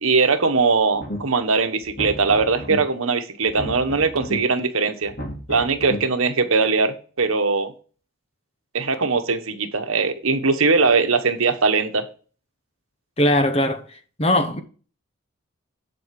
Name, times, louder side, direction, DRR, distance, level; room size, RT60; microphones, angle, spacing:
voice 1, 0.0-5.1 5.5-7.7 8.7-12.1, right 4 dB, 80° right, 1.2 m, -20 dB
sound 1, 0.9-1.4 1.8-2.8 3.4-4.4 5.0-6.0, equal, 45° left, 2.3 m, -33 dB
voice 2, 13.2-14.6, left 1 dB, 30° left, 1.0 m, -20 dB
10.5 x 4.3 x 5.8 m
head